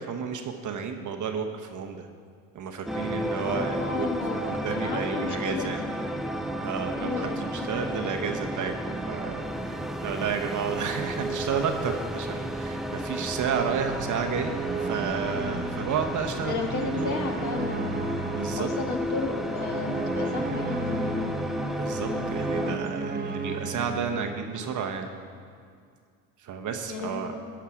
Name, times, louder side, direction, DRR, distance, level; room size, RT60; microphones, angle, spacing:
voice 1, 0.0-2.1 2.5-4.1 4.3-5.8 6.6-8.7 9.0-17.1 18.3-18.7 21.7-25.1 26.4-27.3, right 6 dB, 45° right, 4 dB, 0.9 m, -32 dB
sound 1, 2.9-22.8, equal, ahead, 0.4 m, -32 dB
voice 2, 3.4-5.9 7.0-8.3 16.4-18.1 18.6-21.3 26.9-27.5, left 4 dB, 45° left, 2 dB, 1.6 m, -34 dB
sound 2, 13.9-25.3, right 3 dB, 20° right, 1.0 m, -35 dB
13.5 x 5.8 x 4.9 m, 2.1 s
hypercardioid pair, 75°, 42 cm